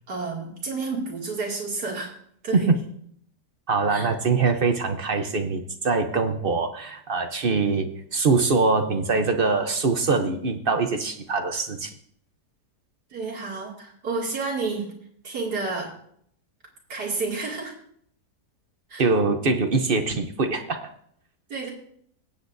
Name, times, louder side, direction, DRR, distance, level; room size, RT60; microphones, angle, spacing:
voice 1, 0.1-2.1 2.4-2.7 3.9-4.1 13.1-14.9 15.2-15.9 16.9-17.7 18.9-19.0 21.5-21.7, right 4 dB, 65° right, -3 dB, 3.0 m, -30 dB
voice 2, 3.7-11.9 19.0-20.9, right 4 dB, 50° right, 6 dB, 0.7 m, -23 dB
23.0 x 8.1 x 2.6 m, 0.67 s
omnidirectional pair, 1.8 m